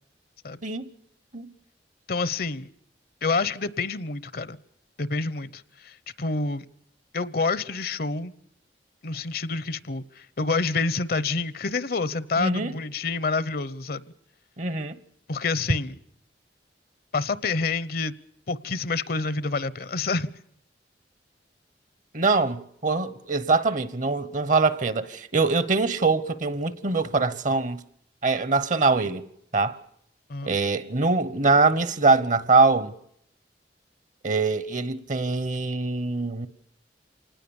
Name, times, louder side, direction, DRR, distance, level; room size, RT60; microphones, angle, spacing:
voice 1, 2.1-2.7 3.2-4.6 5.0-6.6 7.1-8.3 9.0-14.0 15.3-15.9 17.1-18.1 18.5-20.3 30.3-30.5, left 3 dB, 60° left, 0.8 m, -28 dB
voice 2, 12.4-12.7 14.6-15.0 22.1-27.8 28.2-29.2 29.5-29.8 30.4-32.9 34.2-36.5, right 3 dB, 45° right, 1.1 m, -23 dB
26.5 x 19.5 x 7.2 m
head